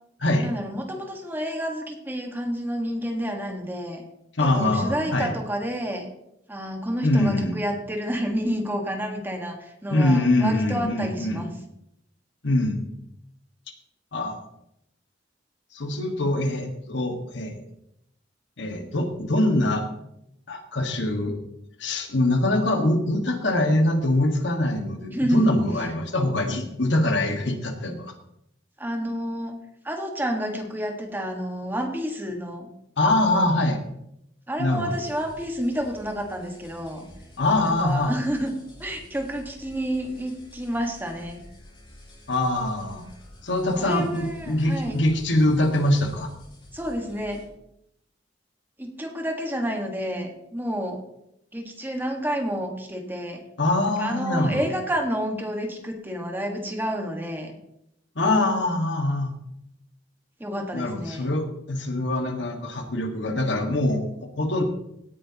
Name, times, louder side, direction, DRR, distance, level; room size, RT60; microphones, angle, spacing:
voice 1, 0.4-4.0 4.4-6.1 6.5-11.5 25.1-25.6 28.8-29.5 29.8-32.7 34.5-37.1 37.6-38.5 38.8-41.5 43.8-45.0 46.7-47.4 48.8-51.0 51.5-53.4 54.0-57.6 60.4-61.3, equal, 10° right, 2 dB, 1.6 m, -29 dB
voice 2, 4.4-5.3 7.0-7.6 9.9-11.4 12.4-12.8 14.1-14.4 15.7-17.6 18.6-19.8 20.5-21.3 21.8-28.1 33.0-33.8 34.6-34.9 37.4-38.1 42.3-43.1 43.4-46.3 53.6-54.7 58.1-59.4 60.7-64.0 64.4-64.6, left 1 dB, 75° left, 4 dB, 1.7 m, -23 dB
sound 1, 34.9-47.5, left 1 dB, 30° left, 5.4 m, -48 dB
17.5 x 9.9 x 3.0 m, 0.80 s
head